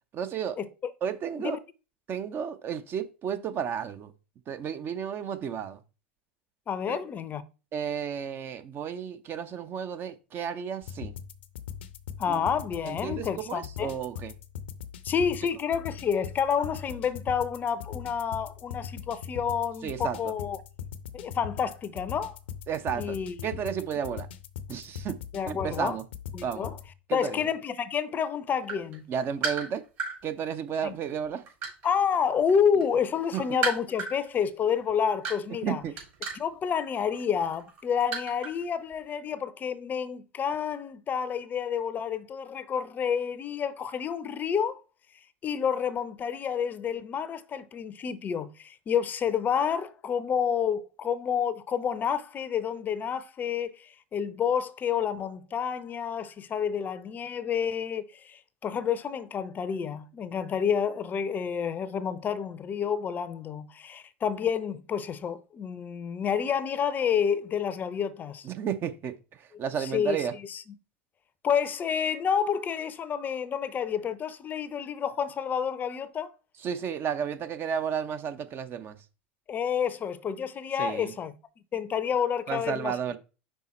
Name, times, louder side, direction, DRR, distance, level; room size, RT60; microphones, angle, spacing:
voice 1, 0.1-0.6 1.0-1.6 2.1-4.1 4.5-5.8 6.9-7.0 7.7-11.1 12.3-12.5 12.8-14.3 19.8-20.3 22.7-23.2 23.4-24.3 24.7-25.2 25.5-26.0 26.4-26.7 27.1-27.5 29.1-29.8 30.2-31.4 33.3-33.4 35.6-35.9 68.4-70.3 76.6-79.0 80.8-81.1 82.5-83.2, right 8 dB, 40° right, 0.7 m, -32 dB
voice 2, 6.7-7.4 12.2-13.9 15.0-20.6 21.1-22.4 22.9-23.4 25.3-26.0 26.3-26.7 27.1-29.1 30.8-30.9 31.8-35.8 36.3-44.8 45.4-68.5 69.8-70.6 71.4-76.3 79.5-81.3 81.7-82.9, left 7 dB, 30° left, 0.6 m, -29 dB
sound 1, 10.8-26.9, left 8 dB, 75° left, 0.6 m, -41 dB
sound 2, 28.6-30.2 30.9-32.5 32.8-38.6 38.9-39.1, right 4 dB, 55° right, 3.7 m, -34 dB
5.5 x 4.0 x 4.2 m
hypercardioid pair, 90°, 6 cm